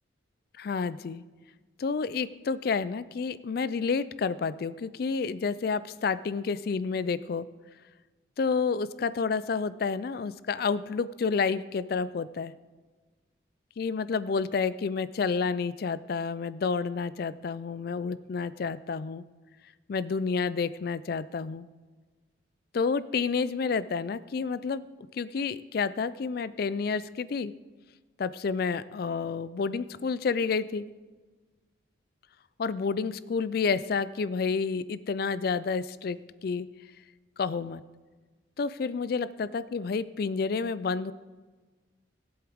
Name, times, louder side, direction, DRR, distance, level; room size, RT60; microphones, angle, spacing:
voice 1, 0.6-1.2 1.8-7.5 8.4-12.5 13.8-19.2 19.9-21.7 22.7-24.8 25.1-27.5 28.2-30.9 32.6-36.7 37.4-37.8 38.6-41.1, left 5 dB, 50° left, 16 dB, 0.3 m, -29 dB
17.5 x 7.9 x 3.5 m, 1.3 s
head